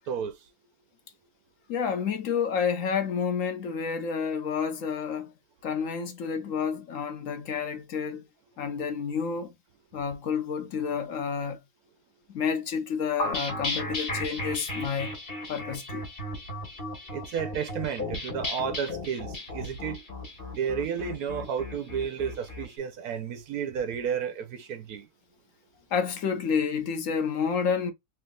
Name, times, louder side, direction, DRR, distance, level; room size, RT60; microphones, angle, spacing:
voice 1, 0.1-0.5 17.1-20.0 20.5-25.1, right 7 dB, 70° right, 0.9 m, -32 dB
voice 2, 1.7-5.3 5.6-8.2 8.6-9.5 9.9-11.6 12.3-15.1 15.5-16.1 25.9-27.9, left 6 dB, 60° left, 0.9 m, -29 dB
sound 1, 13.2-22.7, left 1 dB, 35° left, 1.3 m, -35 dB
3.5 x 2.9 x 2.3 m
omnidirectional pair, 2.0 m